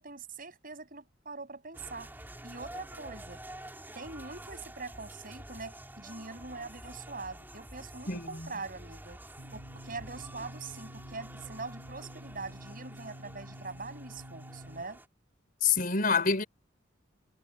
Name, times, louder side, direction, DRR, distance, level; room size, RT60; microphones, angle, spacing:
voice 1, 0.0-2.1 2.4-3.4 4.0-9.2 9.5-15.0, right 3 dB, 45° right, 6.8 m, -43 dB
sound 1, 1.7-15.1, right 1 dB, 10° right, 4.7 m, -48 dB
voice 2, 8.1-8.6 15.6-16.4, left 5 dB, 45° left, 4.5 m, -27 dB
sound 2, 9.4-14.8, equal, 80° right, 7.5 m, -49 dB
head